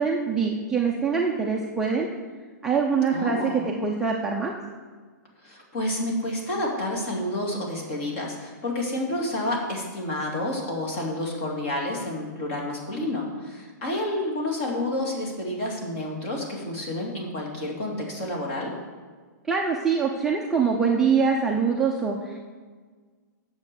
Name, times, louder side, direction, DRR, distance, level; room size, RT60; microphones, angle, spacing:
voice 1, 0.0-2.1 2.6-4.5 19.5-22.6, right 5 dB, 5° right, -3 dB, 0.5 m, -24 dB
voice 2, 3.1-3.6 5.4-18.7, left 1 dB, 35° left, -1 dB, 2.5 m, -29 dB
9.4 x 7.0 x 6.9 m, 1.5 s
hypercardioid pair, 170°, 10 cm